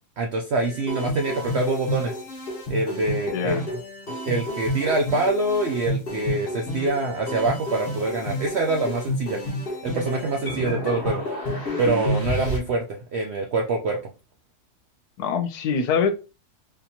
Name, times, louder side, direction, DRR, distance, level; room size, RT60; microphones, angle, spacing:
voice 1, 0.2-2.2 2.7-3.8 4.3-9.4 9.8-11.3 11.8-14.0, right 2 dB, 75° right, 2 dB, 0.6 m, -25 dB
sound 1, 0.6-12.6, equal, 40° left, 1.1 m, -30 dB
voice 2, 3.3-3.6 15.2-16.1, left 6 dB, 85° left, 8 dB, 1.1 m, -24 dB
3.5 x 2.9 x 2.7 m, 0.30 s
omnidirectional pair, 1.7 m